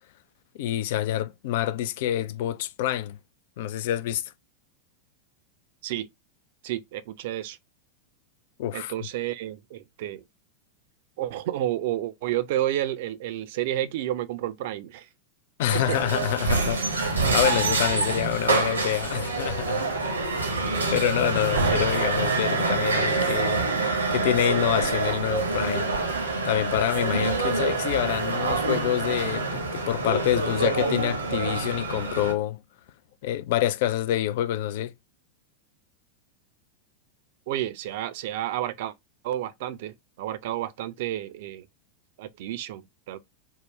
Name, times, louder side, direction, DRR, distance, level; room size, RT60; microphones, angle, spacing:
voice 1, 0.5-3.2 3.6-4.3 8.6-8.9 15.6-19.8 20.6-25.9 26.4-32.6 33.2-34.9, left 12 dB, 50° left, 0.3 m, -27 dB
voice 2, 6.6-7.6 8.7-10.2 11.2-15.1 15.9-16.0 17.9-18.1 37.5-38.9 39.2-41.7 42.2-43.2, right 13 dB, 50° right, 0.5 m, -31 dB
sound 1, 15.7-32.3, right 3 dB, 75° right, 0.9 m, -26 dB
3.7 x 2.1 x 3.1 m
figure-of-eight pair, 90°, 0 cm